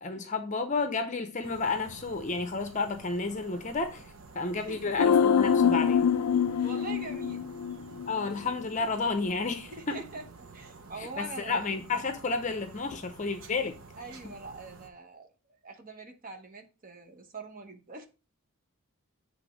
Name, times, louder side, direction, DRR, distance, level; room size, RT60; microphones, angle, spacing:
voice 1, 0.0-4.0 4.3-6.1 8.1-10.0 11.2-13.7, left 4 dB, 35° left, 0.6 m, -31 dB
sound 1, 1.4-14.9, right 4 dB, 65° right, 0.9 m, -50 dB
sound 2, 5.0-8.3 8.5-8.6, left 7 dB, 90° left, 0.3 m, -25 dB
voice 2, 6.6-7.5 9.7-11.7 14.0-15.3 15.6-18.1, right 3 dB, 40° right, 1.0 m, -43 dB
8.1 x 3.5 x 5.0 m
head